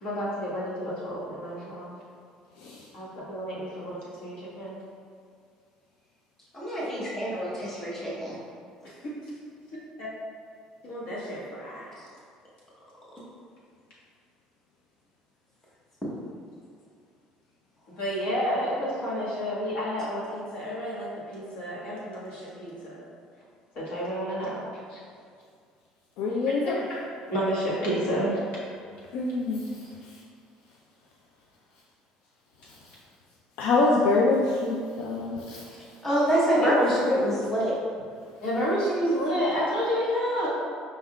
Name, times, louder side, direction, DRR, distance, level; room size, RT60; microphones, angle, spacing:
voice 1, 0.0-2.0 2.9-4.8 8.8-9.1 10.0-10.1 10.8-12.0 17.9-23.0 23.7-24.6 24.9-25.0 26.6-27.0 27.3-28.4 36.6-36.8 38.4-40.5, equal, 60° left, -7 dB, 1.4 m, -30 dB
voice 2, 6.5-8.4 35.6-37.7, equal, 15° left, -7 dB, 0.9 m, -26 dB
voice 3, 26.2-26.8 29.1-29.6 33.6-35.6, left 3 dB, 75° left, -2 dB, 0.4 m, -25 dB
5.2 x 3.6 x 2.3 m, 2.2 s
cardioid pair, 150°, 2 cm